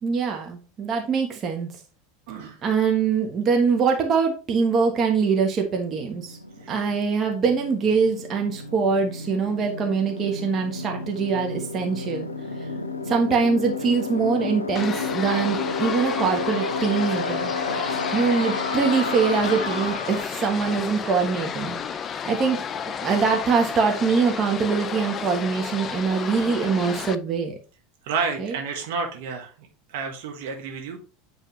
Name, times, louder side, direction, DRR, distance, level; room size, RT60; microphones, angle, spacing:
voice 1, 0.0-1.7 2.6-6.4 6.7-12.3 13.1-17.5 18.1-21.8 22.3-22.6 22.8-27.5 28.4-28.5, right 5 dB, 35° right, 3 dB, 1.3 m, -23 dB
voice 2, 2.3-2.6 6.6-6.8 28.0-29.5 29.9-31.0, right 5 dB, 60° right, 2 dB, 1.3 m, -30 dB
sound 1, 4.7-4.8 5.0-20.3, left 3 dB, 85° left, 0.6 m, -31 dB
sound 2, 14.7-27.1, left 7 dB, 30° left, 0.4 m, -32 dB
9.1 x 3.5 x 3.2 m, 0.35 s
figure-of-eight pair, 80°, 0 cm